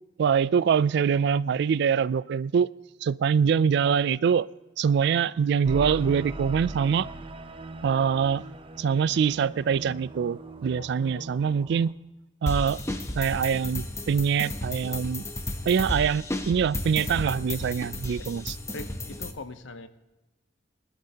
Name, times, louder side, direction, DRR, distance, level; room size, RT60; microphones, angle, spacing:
voice 1, 0.2-2.7 3.0-4.5 4.8-7.1 7.8-8.4 8.8-11.9 12.4-12.8 13.1-15.2 15.7-18.6, right 7 dB, 65° right, 19 dB, 0.3 m, -24 dB
sound 1, 5.6-11.9, right 2 dB, 30° right, 0.6 m, -39 dB
sound 2, 12.5-19.3, left 1 dB, 15° left, 1.0 m, -33 dB
voice 2, 18.7-19.9, left 2 dB, 90° left, 10 dB, 0.9 m, -41 dB
21.5 x 12.0 x 2.9 m, 1.0 s
head